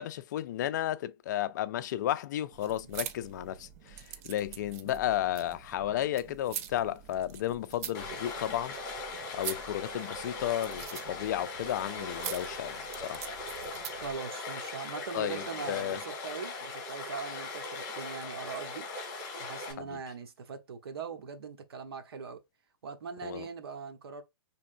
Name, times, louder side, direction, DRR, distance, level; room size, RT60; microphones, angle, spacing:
voice 1, 0.0-8.8 9.3-13.2 15.1-16.0 19.8-20.0 23.2-23.5, left 12 dB, 50° left, 0.4 m, -33 dB
sound 1, 2.5-14.2, right 10 dB, 40° right, 0.5 m, -45 dB
Stream, 7.9-19.7, left 3 dB, 30° left, 2.2 m, -40 dB
voice 2, 13.9-18.9 19.4-22.4 22.8-24.2, right 5 dB, 80° right, 1.1 m, -41 dB
5.4 x 3.5 x 2.6 m
hypercardioid pair, 155°, 13 cm